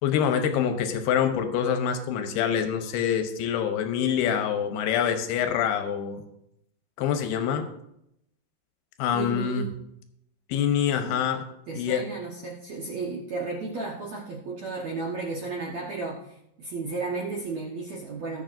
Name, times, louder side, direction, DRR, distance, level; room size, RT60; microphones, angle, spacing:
voice 1, 0.0-6.2 7.0-7.7 9.0-9.7 10.5-11.4 11.7-12.0, left 8 dB, 75° left, 7 dB, 2.6 m, -25 dB
voice 2, 9.1-9.7 10.9-11.1 11.7-18.4, right 3 dB, 75° right, -3 dB, 1.6 m, -33 dB
19.5 x 6.8 x 2.6 m, 0.78 s
omnidirectional pair, 5.1 m